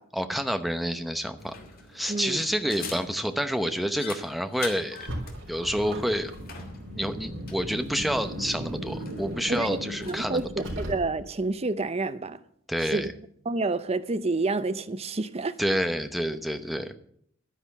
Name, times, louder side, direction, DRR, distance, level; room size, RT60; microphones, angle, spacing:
voice 1, 0.1-1.6 1.9-5.1 5.5-6.3 6.9-10.5 12.7-13.1 15.6-17.0, equal, ahead, 0.9 m, -28 dB
sound 1, 1.4-10.3, left 4 dB, 50° left, 2.4 m, -45 dB
voice 2, 2.1-2.4 9.5-9.8 10.1-12.4 12.9-13.1 13.5-15.6, right 3 dB, 30° right, 0.7 m, -28 dB
Car, 4.9-11.4, equal, 70° right, 4.0 m, -37 dB
12.0 x 10.0 x 7.2 m
head